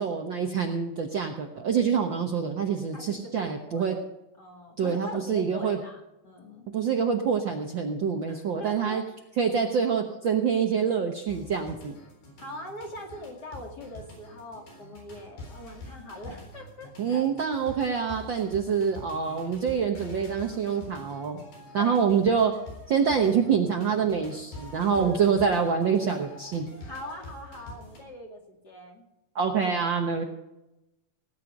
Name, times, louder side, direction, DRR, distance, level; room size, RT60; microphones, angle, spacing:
voice 1, 0.0-4.0 4.8-5.8 6.7-9.0 9.4-12.0 17.0-21.4 21.7-22.5 22.9-26.7 29.3-30.2, right 6 dB, 80° right, 3 dB, 1.0 m, -26 dB
voice 2, 2.9-4.0 4.4-6.7 8.3-9.0 12.4-17.3 21.7-22.0 24.9-25.2 26.8-29.0, left 1 dB, 35° left, 1 dB, 2.5 m, -42 dB
sound 1, 11.3-28.0, left 2 dB, 75° left, 5.6 m, -46 dB
18.5 x 9.8 x 5.2 m, 0.94 s
omnidirectional pair, 3.9 m